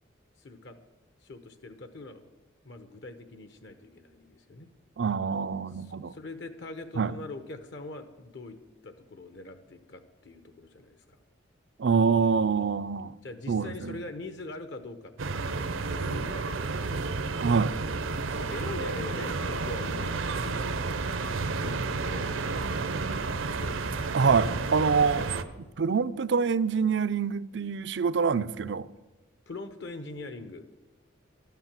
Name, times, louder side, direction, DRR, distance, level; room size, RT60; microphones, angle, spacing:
voice 1, 0.4-0.8 1.2-2.2 2.6-4.7 5.8-11.2 13.1-17.1 18.4-20.9 21.5-23.8 25.0-25.2 29.5-30.6, left 2 dB, 60° left, 0.9 m, -43 dB
voice 2, 5.0-6.1 7.0-7.1 11.8-13.1 13.5-14.0 17.4-17.8 24.1-25.3 25.8-28.9, right 5 dB, 60° right, 0.4 m, -25 dB
sound 1, 15.2-25.4, right 3 dB, 80° right, 0.8 m, -31 dB
12.5 x 10.5 x 7.4 m
head